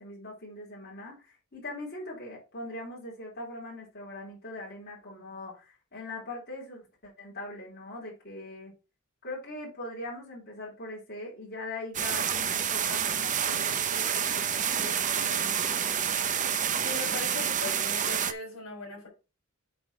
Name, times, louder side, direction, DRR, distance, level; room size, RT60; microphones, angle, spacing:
voice 1, 0.0-8.7 9.2-15.6, left 2 dB, 50° left, 4.3 m, -41 dB
sound 1, 11.9-18.3, right 8 dB, 40° right, 0.7 m, -28 dB
voice 2, 16.8-19.1, left 3 dB, 80° left, 4.0 m, -39 dB
8.5 x 3.8 x 5.9 m
head